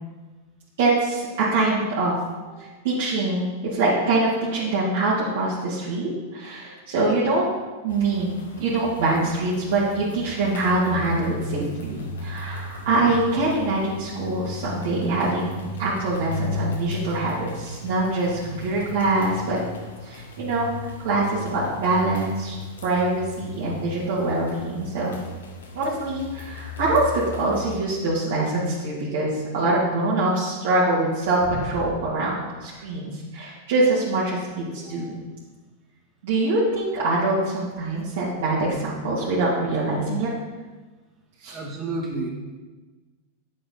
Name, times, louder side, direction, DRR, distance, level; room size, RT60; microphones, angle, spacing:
voice 1, 0.8-2.2 2.6-7.5 7.8-19.6 20.0-20.7 21.0-22.6 22.8-25.2 25.7-32.3 32.6-35.1 36.2-40.3 41.4-41.6, right 2 dB, 70° right, -9 dB, 2.4 m, -24 dB
voice 2, 2.5-2.8 34.7-35.2 41.5-42.3, right 2 dB, 30° right, -2 dB, 2.2 m, -33 dB
sound 1, 7.9-27.8, left 2 dB, 90° left, 1.5 m, -36 dB
8.5 x 7.5 x 4.1 m, 1.3 s
hypercardioid pair, 120°, 0 cm